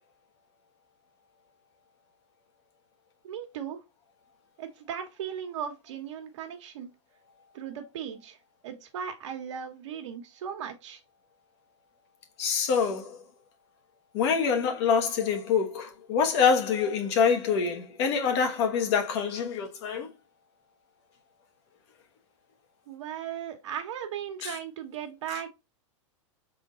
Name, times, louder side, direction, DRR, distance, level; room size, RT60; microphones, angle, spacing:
voice 1, 3.2-3.8 4.6-7.0 7.5-8.4 8.6-11.0 22.9-25.5, right 8 dB, 70° right, 1.2 m, -37 dB
voice 2, 12.4-13.2 14.1-20.1 24.4-24.5, left 6 dB, 55° left, 1.3 m, -25 dB
5.2 x 3.7 x 2.5 m
hypercardioid pair, 130°, 16 cm